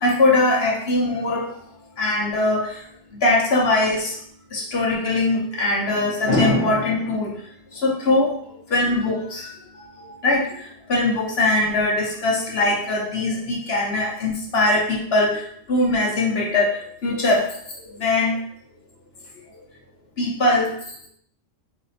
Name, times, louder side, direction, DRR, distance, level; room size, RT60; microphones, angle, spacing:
voice 1, 0.0-1.5 2.0-2.8 3.2-4.2 4.5-7.4 7.7-8.3 8.7-9.5 10.2-17.5 17.9-18.4 20.2-20.7, left 2 dB, 55° left, -2 dB, 1.1 m, -21 dB
4.0 x 3.3 x 4.1 m, 0.64 s
omnidirectional pair, 1.3 m